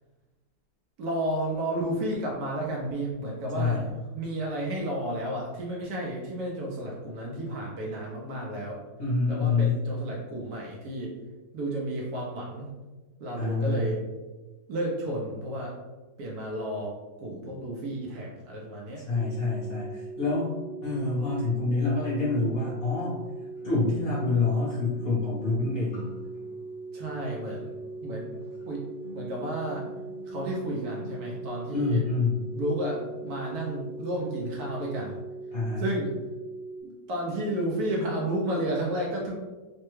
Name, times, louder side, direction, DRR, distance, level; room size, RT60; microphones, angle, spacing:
voice 1, 1.0-8.8 9.3-11.1 11.5-12.7 13.2-14.0 14.7-15.7 16.2-19.0 26.9-27.7 28.0-28.3 28.7-28.8 29.1-29.8 30.3-32.0 32.5-35.2 35.8-36.1 36.8-39.3, right 1 dB, 70° right, -2 dB, 1.0 m, -32 dB
voice 2, 9.0-9.8 13.3-13.9 19.1-20.5 20.8-23.2 23.6-26.0 31.7-32.4 35.5-35.9, left 3 dB, 50° left, -7 dB, 0.7 m, -27 dB
sound 1, 19.1-36.8, right 3 dB, 85° right, 1.5 m, -40 dB
sound 2, 22.2-22.3 23.6-34.7 34.9-35.2, left 2 dB, 80° left, 0.5 m, -50 dB
3.3 x 2.1 x 3.0 m, 1.2 s
omnidirectional pair, 2.0 m